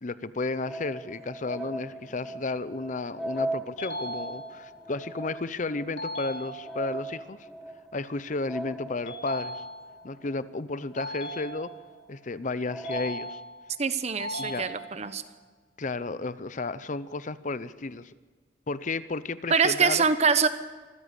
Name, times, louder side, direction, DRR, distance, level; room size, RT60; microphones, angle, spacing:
voice 1, 0.0-7.5 7.9-9.6 10.0-11.7 12.1-13.4 14.4-14.7 15.8-18.1 18.7-20.0, left 3 dB, 45° left, 15 dB, 0.7 m, -33 dB
sound 1, 0.7-11.5 11.9-12.0 12.7-13.1, right 1 dB, ahead, 1.0 m, -39 dB
sound 2, 3.8-4.8 6.0-7.0 9.1-10.1 11.0-12.0 12.8-13.7 14.2-15.2, equal, 90° left, 3.6 m, -38 dB
voice 2, 13.8-15.2 19.5-20.5, right 5 dB, 40° right, 12 dB, 1.0 m, -24 dB
25.0 x 15.5 x 8.3 m, 1.4 s
head